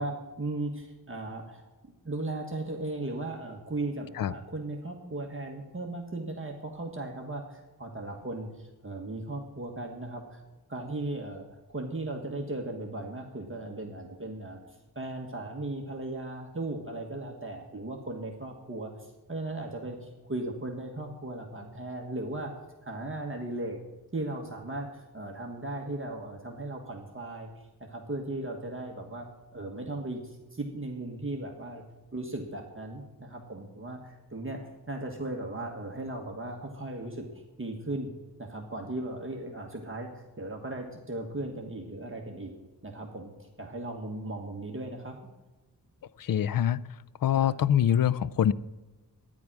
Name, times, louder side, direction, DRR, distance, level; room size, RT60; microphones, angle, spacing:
voice 1, 0.0-1.6 2.0-10.4 10.7-22.5 22.8-23.8 24.1-29.3 29.5-31.8 32.1-37.3 37.6-38.1 38.4-42.5 42.8-45.1 47.3-47.5, right 2 dB, 30° right, 1 dB, 1.5 m, -37 dB
voice 2, 46.2-46.8 47.2-48.5, left 10 dB, 60° left, 19 dB, 0.5 m, -24 dB
12.0 x 10.0 x 6.1 m, 1.2 s
wide cardioid pair, 105°, 39 cm